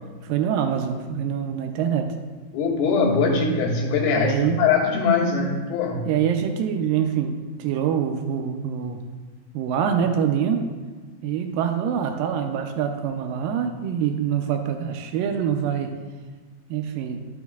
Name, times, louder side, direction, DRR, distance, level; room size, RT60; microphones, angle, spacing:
voice 1, 0.2-2.2 4.2-4.6 6.1-9.0 9.5-10.6 11.2-15.9 16.7-17.2, right 8 dB, 85° right, 5 dB, 2.0 m, -25 dB
voice 2, 2.5-6.1, left 4 dB, 85° left, -2 dB, 3.0 m, -22 dB
12.5 x 6.2 x 2.3 m, 1.4 s
omnidirectional pair, 4.5 m